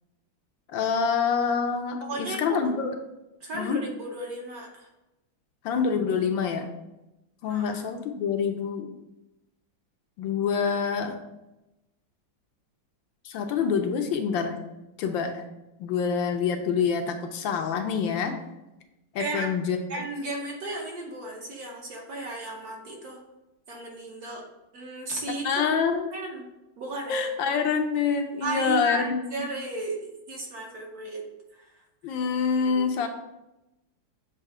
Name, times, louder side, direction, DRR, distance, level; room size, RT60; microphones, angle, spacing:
voice 1, 0.7-2.9 3.5-3.8 5.6-6.7 7.4-8.9 10.2-11.1 13.2-14.6 15.0-15.4 15.8-18.4 19.1-19.8 25.4-26.1 27.1-29.2 32.0-33.1, left 6 dB, 75° left, 5 dB, 1.3 m, -26 dB
voice 2, 2.0-2.6 3.4-4.9 7.5-7.8 19.2-19.6 19.9-23.2 23.7-24.5 24.7-25.6 26.1-26.5 26.8-27.2 28.4-31.2 31.5-32.1 32.6-32.9, right 2 dB, 60° right, 0 dB, 1.2 m, -35 dB
7.7 x 2.7 x 4.7 m, 0.95 s
omnidirectional pair, 2.2 m